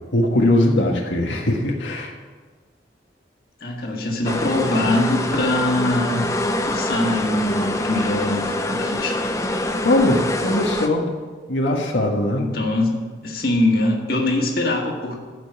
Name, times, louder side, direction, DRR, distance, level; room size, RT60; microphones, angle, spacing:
voice 1, 0.1-2.1 9.8-11.1 11.5-12.5, left 1 dB, 85° left, 0 dB, 1.5 m, -20 dB
voice 2, 3.6-6.2 6.7-9.2 12.4-15.2, left 1 dB, 55° left, 0 dB, 1.8 m, -22 dB
sound 1, 4.3-10.9, left 1 dB, 15° left, 0.7 m, -25 dB
14.0 x 5.3 x 8.0 m, 1.4 s
head